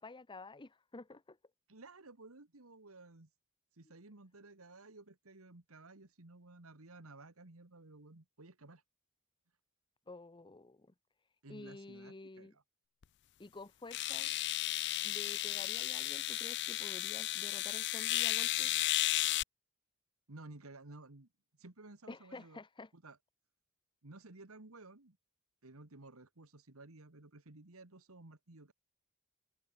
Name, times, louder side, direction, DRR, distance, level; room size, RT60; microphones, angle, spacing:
voice 1, 0.0-1.4 10.1-10.9 11.5-12.5 13.4-14.3 15.0-18.8 22.1-22.9, left 2 dB, 20° left, 0.8 m, -50 dB
voice 2, 1.7-3.3 3.7-8.8 11.4-12.6 20.3-21.3 21.6-22.6 22.9-23.2 24.0-25.2 25.6-28.7, right 2 dB, 70° right, 1.9 m, -55 dB
sound 1, 13.0-13.1 13.9-19.4, left 15 dB, 55° left, 0.4 m, -34 dB
head